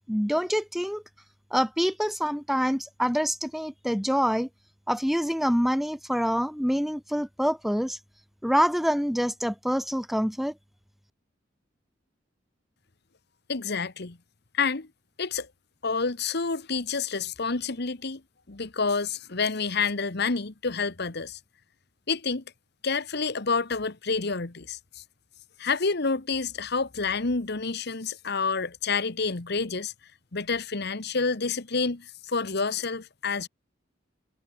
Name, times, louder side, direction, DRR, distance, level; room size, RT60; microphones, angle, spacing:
voice 1, 0.1-1.0 1.5-4.5 4.9-8.0 8.4-10.5, equal, ahead, 1.2 m, -26 dB
voice 2, 13.5-14.2 14.5-14.9 15.2-15.5 15.8-18.2 18.5-21.4 22.1-22.4 22.8-25.0 25.6-29.9 30.3-33.5, left 4 dB, 55° left, 1.3 m, -28 dB
head